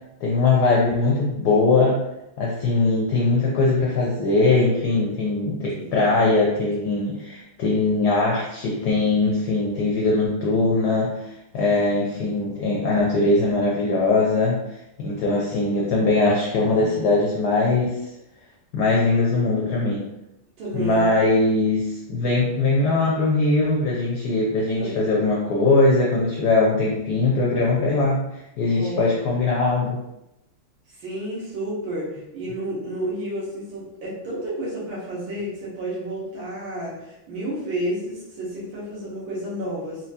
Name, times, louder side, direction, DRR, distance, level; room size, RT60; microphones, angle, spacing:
voice 1, 0.2-2.0 2.4-18.0 18.7-20.0 20.7-30.0, left 3 dB, 70° left, -3 dB, 1.0 m, -21 dB
voice 2, 5.7-6.1 20.6-21.1 24.7-25.0 28.7-29.1 31.0-40.1, right 1 dB, 75° right, -7 dB, 1.7 m, -31 dB
4.2 x 2.2 x 2.7 m, 0.90 s
omnidirectional pair, 2.2 m